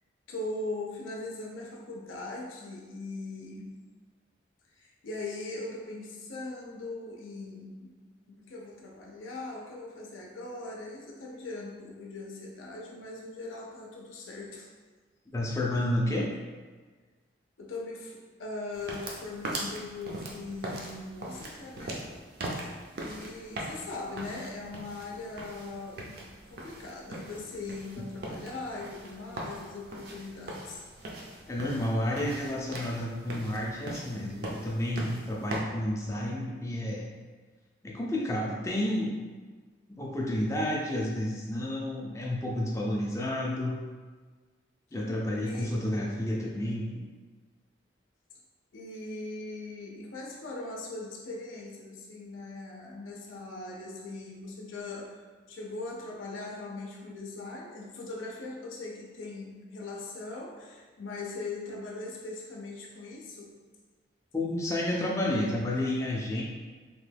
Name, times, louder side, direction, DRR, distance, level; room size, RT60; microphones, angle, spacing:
voice 1, 0.3-3.8 4.7-8.0 8.3-14.7 17.6-22.1 23.0-30.8 45.4-45.8 48.7-55.2 55.5-63.6, left 2 dB, 90° left, -1 dB, 0.5 m, -40 dB
voice 2, 15.3-16.3 31.5-37.1 37.8-39.1 39.9-43.8 44.9-47.0 64.3-66.4, left 1 dB, 15° left, -3 dB, 0.4 m, -30 dB
sound 1, 18.7-35.6, right 1 dB, 50° right, 0.4 m, -41 dB
2.9 x 2.2 x 3.3 m, 1.4 s
head